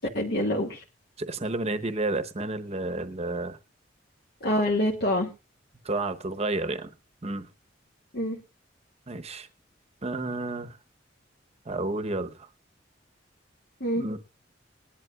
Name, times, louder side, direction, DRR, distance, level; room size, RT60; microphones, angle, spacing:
voice 1, 0.1-0.8 4.4-5.3 8.1-8.4 13.8-14.0, left 1 dB, 60° left, 1.6 m, -26 dB
voice 2, 1.2-3.6 5.8-6.9 7.2-7.5 9.1-9.5 10.0-10.8 11.7-12.5 14.0-14.2, right 2 dB, 35° right, 0.9 m, -31 dB
20.0 x 11.0 x 2.4 m
head